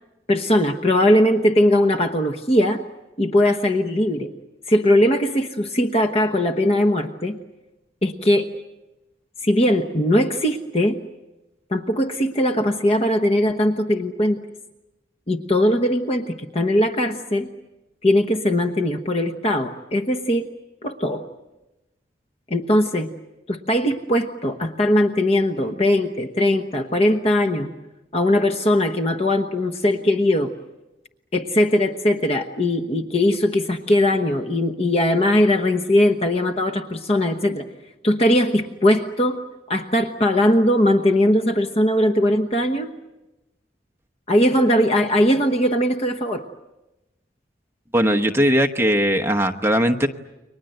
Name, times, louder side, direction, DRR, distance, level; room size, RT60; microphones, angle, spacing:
voice 1, 0.3-2.8 3.2-4.3 4.7-7.4 8.0-8.5 9.4-11.0 11.7-14.4 15.3-17.5 18.0-20.5 20.8-21.2 22.5-23.1 23.5-27.7 28.1-30.5 31.3-37.7 38.0-39.4 39.7-42.9 44.3-46.4, left 1 dB, 35° left, 6 dB, 1.1 m, -20 dB
voice 2, 47.9-50.1, equal, 15° right, 5 dB, 1.1 m, -19 dB
30.0 x 24.0 x 7.9 m, 1.0 s
head